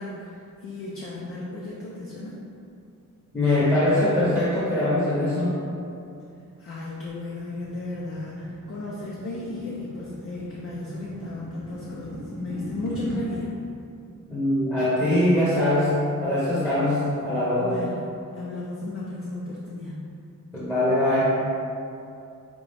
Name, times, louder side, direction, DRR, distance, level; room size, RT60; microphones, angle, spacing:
voice 1, 0.0-2.4 6.6-13.5 17.6-20.1, left 2 dB, 45° left, -5 dB, 0.5 m, -35 dB
voice 2, 3.3-5.6 14.3-17.8 20.5-21.3, left 1 dB, 5° left, -10 dB, 0.8 m, -22 dB
sound 1, 6.8-13.2, right 1 dB, 85° right, 0.7 m, -40 dB
5.2 x 2.4 x 3.3 m, 2.6 s
wide cardioid pair, 155°, 33 cm